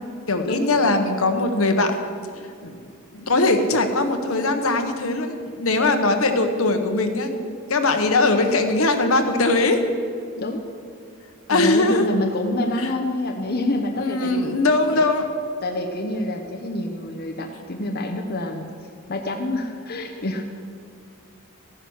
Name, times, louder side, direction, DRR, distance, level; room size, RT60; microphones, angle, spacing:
voice 1, 0.3-1.9 2.4-2.8 3.1-9.8 11.5-12.1 12.8-12.9 14.0-15.3, left 2 dB, 70° left, 6 dB, 1.2 m, -21 dB
voice 2, 11.5-14.4 14.9-15.0 15.6-18.7 19.1-20.4, left 1 dB, 45° left, 2 dB, 0.9 m, -27 dB
15.0 x 9.3 x 6.4 m, 2.3 s
head